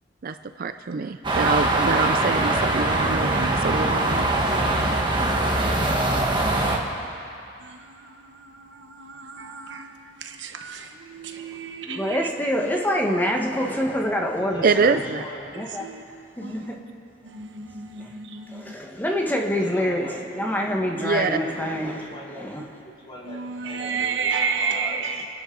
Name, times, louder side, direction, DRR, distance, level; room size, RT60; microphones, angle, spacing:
voice 1, 0.2-4.6 14.6-15.2 20.9-21.4, right 4 dB, 50° right, 10 dB, 0.4 m, -25 dB
sound 1, 1.2-6.8, right 2 dB, 25° right, 1.5 m, -22 dB
voice 2, 7.6-9.9 10.2-12.2 15.8-16.0 16.4-16.6 17.2-18.7 23.3-25.3, right 5 dB, 70° right, 5 dB, 1.1 m, -31 dB
voice 3, 11.8-15.0 15.5-15.8 16.4-16.8 18.0-18.1 18.5-22.0 22.4-22.6, equal, 10° left, 0 dB, 1.3 m, -26 dB
voice 4, 14.4-15.6 19.4-20.2 21.1-22.5 22.8-24.3 24.6-25.3, left 1 dB, 30° left, -5 dB, 3.2 m, -40 dB
29.0 x 11.0 x 3.9 m, 2.6 s
head